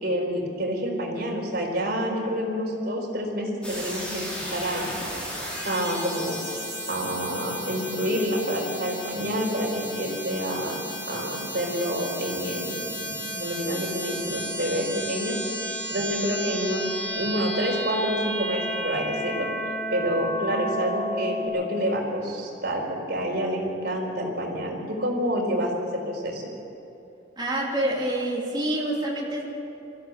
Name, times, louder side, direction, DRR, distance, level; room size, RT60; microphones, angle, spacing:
voice 1, 0.0-4.9 5.6-6.6 6.9-19.5 19.9-26.5, equal, 55° right, 0 dB, 4.4 m, -28 dB
sound 1, 3.6-21.5, equal, 5° left, 6.0 m, -33 dB
voice 2, 27.4-29.4, right 1 dB, 25° right, -3 dB, 2.9 m, -27 dB
22.0 x 15.0 x 8.0 m, 2.8 s
head